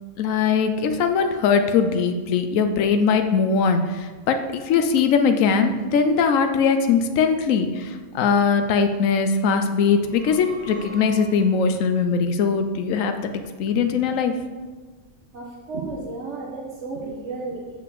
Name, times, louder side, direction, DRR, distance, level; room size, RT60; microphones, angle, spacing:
voice 1, 0.2-13.3 13.6-14.3, left 5 dB, 85° left, 7 dB, 1.0 m, -21 dB
sound 1, 9.9-11.8, right 2 dB, 45° right, 2.4 m, -43 dB
voice 2, 15.3-17.8, right 3 dB, 60° right, -1 dB, 1.4 m, -33 dB
6.8 x 5.9 x 6.9 m, 1.4 s
omnidirectional pair, 1.3 m